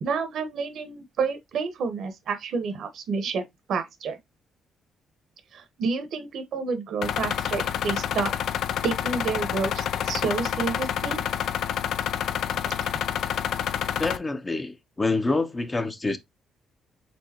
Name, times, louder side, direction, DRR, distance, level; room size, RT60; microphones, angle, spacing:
voice 1, 0.0-3.4 3.7-4.2 5.5-8.3 8.8-11.2 12.7-12.8, right 5 dB, 70° right, 1.1 m, -29 dB
sound 1, 7.0-14.2, left 9 dB, 75° left, 0.4 m, -28 dB
voice 2, 14.0-16.2, left 3 dB, 25° left, 0.7 m, -26 dB
4.5 x 3.8 x 2.8 m
cardioid pair, 90°, 0 cm